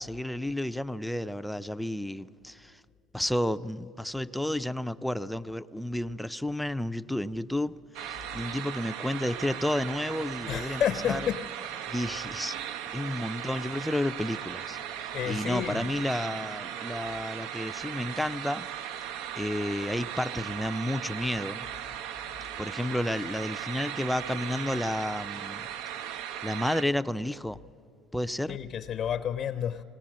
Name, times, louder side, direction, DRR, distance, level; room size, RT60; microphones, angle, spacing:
voice 1, 0.0-2.8 3.1-10.8 11.1-11.2 11.9-12.6 12.9-18.7 19.4-21.7 22.6-25.7 26.4-27.6 28.1-28.6, left 1 dB, ahead, 0.4 m, -31 dB
sound 1, 7.9-26.8, right 10 dB, 80° right, 0.6 m, -38 dB
sound 2, 9.0-18.2, right 3 dB, 45° right, 1.5 m, -56 dB
voice 2, 10.4-11.5 11.9-12.1 15.1-15.9 28.5-29.8, left 9 dB, 50° left, 0.6 m, -30 dB
19.0 x 18.5 x 7.4 m
cardioid pair, 110°, 0 cm